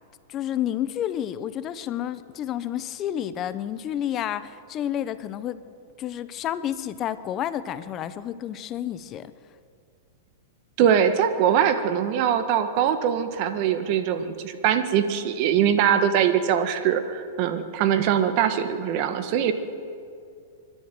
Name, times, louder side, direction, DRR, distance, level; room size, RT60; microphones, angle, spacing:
voice 1, 0.3-5.6 6.0-9.3, left 11 dB, 30° left, 13 dB, 0.9 m, -30 dB
voice 2, 10.8-19.5, right 9 dB, 45° right, 9 dB, 1.7 m, -22 dB
24.5 x 12.0 x 9.3 m, 2.4 s
hypercardioid pair, 145°, 0 cm